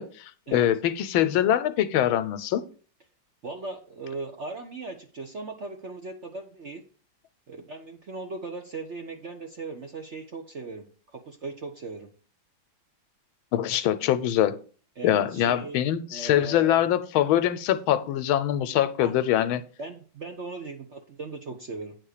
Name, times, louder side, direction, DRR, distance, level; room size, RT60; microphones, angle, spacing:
voice 1, 0.0-2.6 13.5-14.6 15.0-19.6, left 11 dB, 85° left, 1.5 m, -23 dB
voice 2, 3.4-6.9 7.5-12.1 15.0-15.8 16.1-16.8 19.0-19.1 19.8-22.0, right 3 dB, 50° right, 0.8 m, -38 dB
9.2 x 4.3 x 6.6 m
omnidirectional pair, 2.2 m